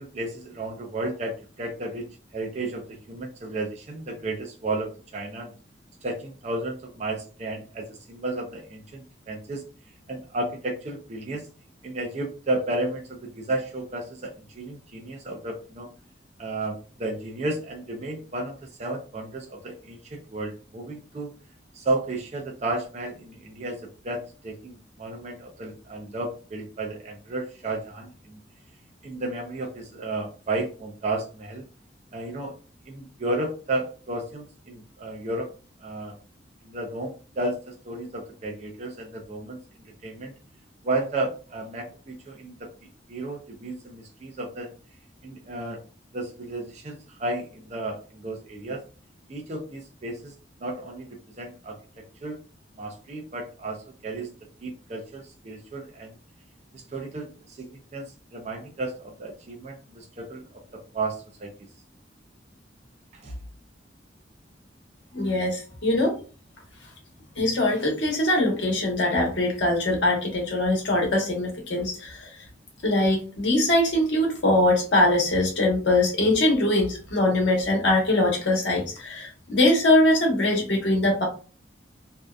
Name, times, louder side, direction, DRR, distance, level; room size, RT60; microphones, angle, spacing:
voice 1, 0.0-5.5 6.0-9.6 10.1-11.5 11.8-15.9 16.4-21.3 21.7-28.4 29.0-31.7 32.1-32.5 32.9-35.5 35.8-36.2 36.6-39.6 40.0-40.3 40.8-42.7 43.1-44.7 45.2-45.8 46.1-48.8 49.3-50.3 50.6-52.4 52.8-54.3 54.6-56.2 56.7-61.5 63.1-63.4, right 2 dB, 40° right, 1 dB, 0.4 m, -33 dB
voice 2, 65.1-66.1 67.4-72.3 72.8-81.3, left 1 dB, 75° left, 0 dB, 1.0 m, -22 dB
2.6 x 2.2 x 2.3 m, 0.35 s
head